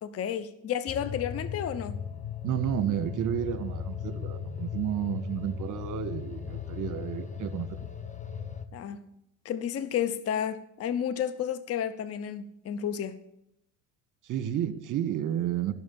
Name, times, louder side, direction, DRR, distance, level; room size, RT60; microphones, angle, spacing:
voice 1, 0.0-1.9 8.7-9.1 9.4-13.2, left 9 dB, 35° left, 12 dB, 0.8 m, -31 dB
sound 1, 0.9-8.6, left 8 dB, 15° left, 1.1 m, -37 dB
voice 2, 2.4-7.7 14.3-15.7, right 10 dB, 45° right, 11 dB, 1.5 m, -31 dB
12.5 x 6.2 x 8.6 m, 0.79 s
hypercardioid pair, 75°, 42 cm